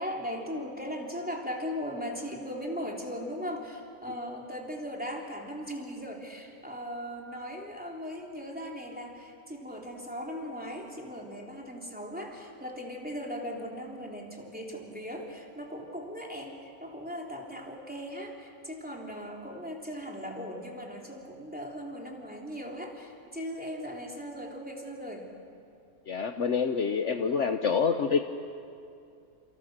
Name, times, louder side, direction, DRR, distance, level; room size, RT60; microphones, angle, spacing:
voice 1, 0.0-25.3, equal, 5° right, -1 dB, 3.4 m, -38 dB
voice 2, 26.1-28.2, left 6 dB, 55° left, 6 dB, 1.2 m, -27 dB
29.5 x 28.0 x 6.6 m, 2.5 s
omnidirectional pair, 1.5 m